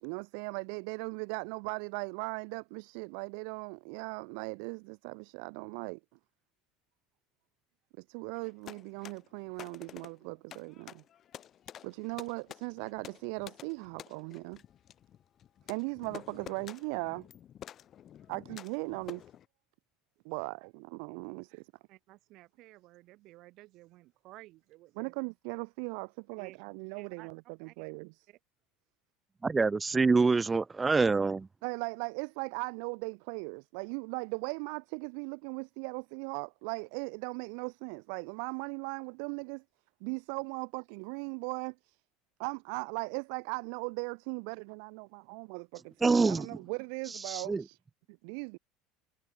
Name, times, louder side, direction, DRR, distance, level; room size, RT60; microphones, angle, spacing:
voice 1, 0.0-6.0 8.1-11.0 11.8-14.6 15.7-17.3 18.3-19.2 20.2-21.7 25.0-28.1 31.6-39.6 40.0-42.0 42.4-47.8 48.2-48.6, right 40 dB or more, 75° right, 2.2 m, -38 dB
sound 1, 8.3-19.5, left 10 dB, 40° left, 4.7 m, -50 dB
voice 2, 21.9-25.1 26.4-26.6 26.9-27.3 27.6-27.8 28.3-28.4, right 18 dB, 55° right, 7.1 m, -54 dB
voice 3, 29.4-31.5 46.0-46.5 47.3-47.6, right 4 dB, 15° right, 1.4 m, -26 dB
supercardioid pair, 130°, 0 cm